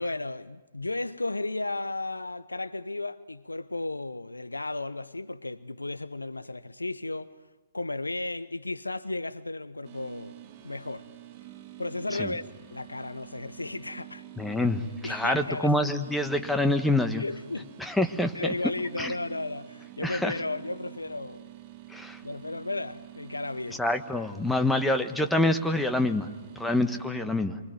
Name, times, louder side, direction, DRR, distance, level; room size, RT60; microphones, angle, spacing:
voice 1, 0.0-7.3 7.7-10.3 10.6-11.1 11.8-12.4 12.7-14.2 15.0-15.7 17.2-17.7 18.3-21.5 22.2-23.8, left 2 dB, 85° left, 0.9 m, -34 dB
sound 1, 9.8-27.1, right 13 dB, 30° right, 3.3 m, -48 dB
voice 2, 14.4-17.2 17.8-18.3 19.0-19.1 20.0-20.3 21.9-22.2 23.8-26.3 26.6-27.6, left 1 dB, 5° left, 1.4 m, -26 dB
26.5 x 24.0 x 9.3 m
figure-of-eight pair, 120°, 0 cm